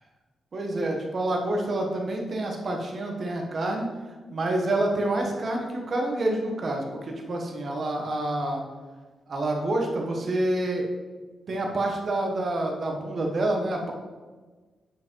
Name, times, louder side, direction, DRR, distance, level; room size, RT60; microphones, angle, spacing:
voice 1, 0.5-3.9 4.3-8.6 9.3-10.9 11.5-13.9, right 1 dB, 40° right, 1 dB, 1.4 m, -27 dB
8.4 x 5.3 x 4.6 m, 1.3 s
wide cardioid pair, 165°, 0 cm